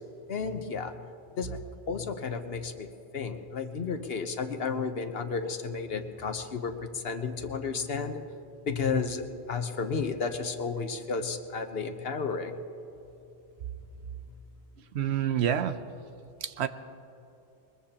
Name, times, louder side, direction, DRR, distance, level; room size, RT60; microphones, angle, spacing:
voice 1, 0.3-1.0 1.4-1.6 1.9-2.9 3.1-8.2 8.6-12.6, left 5 dB, 60° left, 7 dB, 1.1 m, -32 dB
voice 2, 14.9-15.8 16.4-16.7, right 9 dB, 70° right, 11 dB, 0.9 m, -27 dB
22.0 x 21.5 x 2.9 m, 2.8 s
omnidirectional pair, 1.2 m